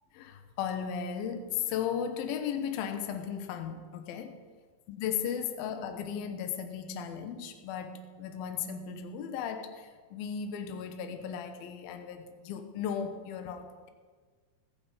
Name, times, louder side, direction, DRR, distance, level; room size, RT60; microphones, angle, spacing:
voice 1, 0.1-4.4 5.0-13.9, left 8 dB, 70° left, 7 dB, 2.6 m, -36 dB
20.5 x 9.1 x 5.0 m, 1.5 s
omnidirectional pair, 5.1 m